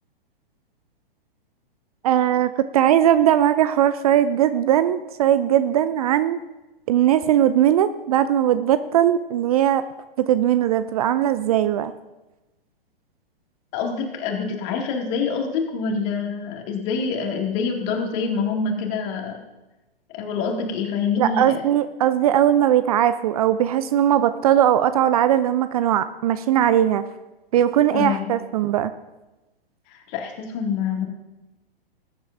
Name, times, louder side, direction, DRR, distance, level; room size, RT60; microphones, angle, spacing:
voice 1, 2.0-6.4 6.9-9.8 10.3-11.9 21.2-27.0 27.5-28.9, right 11 dB, 40° right, 13 dB, 0.5 m, -19 dB
voice 2, 13.7-19.4 20.1-21.6 27.9-28.3 29.9-31.0, left 5 dB, 35° left, 1 dB, 2.2 m, -26 dB
20.0 x 10.0 x 2.6 m, 1.1 s
figure-of-eight pair, 115°, 30 cm